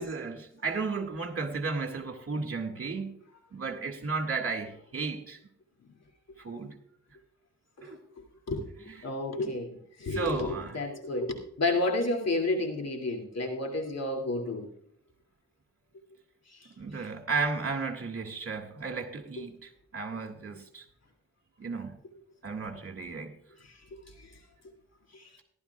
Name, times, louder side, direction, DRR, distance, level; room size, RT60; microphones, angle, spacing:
voice 1, 0.0-3.2 3.5-5.4 6.4-6.8 7.8-8.0 9.0-9.1 10.1-10.8 16.8-20.8 21.6-22.0 22.4-23.3, right 4 dB, 50° right, 2.1 m, -34 dB
voice 2, 9.0-14.7 16.5-16.7 16.9-17.1 19.4-19.5 23.6-24.3 25.1-25.3, left 2 dB, 55° left, 2.6 m, -31 dB
18.5 x 12.0 x 2.4 m
cardioid pair, 60°, 30 cm